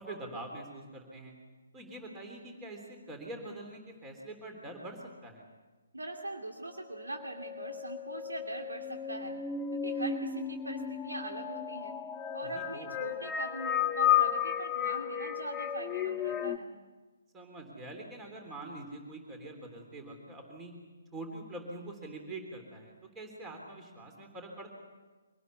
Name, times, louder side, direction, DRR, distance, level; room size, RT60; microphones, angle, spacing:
voice 1, 0.0-1.3 1.7-5.4 12.4-12.9 17.3-20.7 21.1-24.7, right 2 dB, 15° right, 2 dB, 3.5 m, -44 dB
voice 2, 5.9-9.4 9.7-12.0 12.3-16.7, right 1 dB, 80° right, 2 dB, 2.6 m, -41 dB
sound 1, 6.9-16.6, left 9 dB, 10° left, 0.9 m, -33 dB
25.0 x 19.0 x 8.3 m, 1.3 s
figure-of-eight pair, 135°, 0 cm